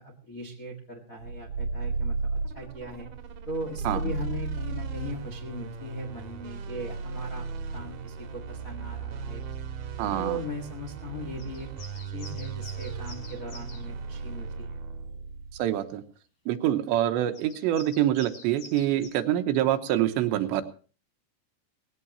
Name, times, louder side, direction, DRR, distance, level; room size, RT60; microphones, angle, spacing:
voice 1, 0.0-3.1 3.5-7.5 7.7-9.4 10.0-11.7 12.0-14.8, equal, 70° left, 1 dB, 0.8 m, -38 dB
sound 1, 1.2-15.8, right 4 dB, 60° right, 2.4 m, -36 dB
voice 2, 10.0-10.4 15.6-16.0 16.5-20.6, right 12 dB, 80° right, 8 dB, 3.2 m, -25 dB
sound 2, 11.4-13.9 17.3-19.1, left 2 dB, 50° left, 6.2 m, -47 dB
19.5 x 16.0 x 2.9 m, 0.38 s
omnidirectional pair, 5.1 m